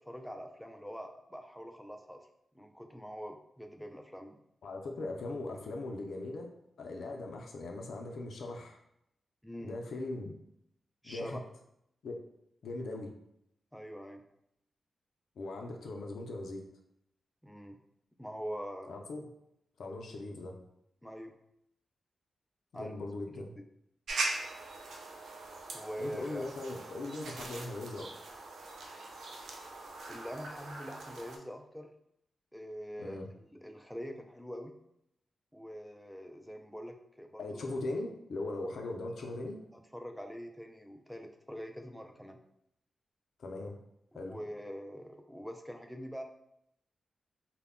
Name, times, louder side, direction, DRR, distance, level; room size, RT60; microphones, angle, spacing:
voice 1, 0.0-2.2 2.5-4.4 9.4-9.8 11.0-11.4 13.7-14.2 17.4-17.8 18.2-18.9 21.0-21.4 22.7-23.1 25.7-26.5 30.1-31.9 32.5-34.7 35.5-37.6 39.7-42.4 44.1-46.2, equal, 5° left, 5 dB, 0.3 m, -44 dB
voice 2, 4.6-8.8 9.6-10.3 11.0-11.4 12.0-12.2 12.6-13.1 15.4-16.6 18.9-19.2 19.8-20.6 22.7-23.5 26.0-28.2 33.0-33.3 37.4-39.6 43.4-43.8 44.1-44.4, left 2 dB, 75° left, 2 dB, 0.4 m, -39 dB
sound 1, 24.1-31.4, right 2 dB, 80° right, 0.4 m, -41 dB
2.1 x 2.1 x 3.5 m, 0.78 s
cardioid pair, 85°, 0 cm